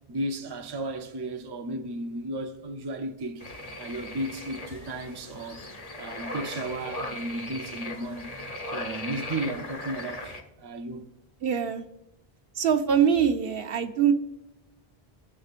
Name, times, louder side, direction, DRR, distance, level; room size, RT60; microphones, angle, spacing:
voice 1, 0.1-3.4 3.8-5.6 6.0-8.3 8.7-10.3 10.6-11.1, right 1 dB, 30° right, 0.6 m, -34 dB
sound 1, 3.4-10.4, left 1 dB, 40° left, 1.0 m, -38 dB
voice 2, 11.4-11.8 12.6-14.1, right 8 dB, 70° right, 0.9 m, -23 dB
17.0 x 6.4 x 2.5 m
omnidirectional pair, 1.0 m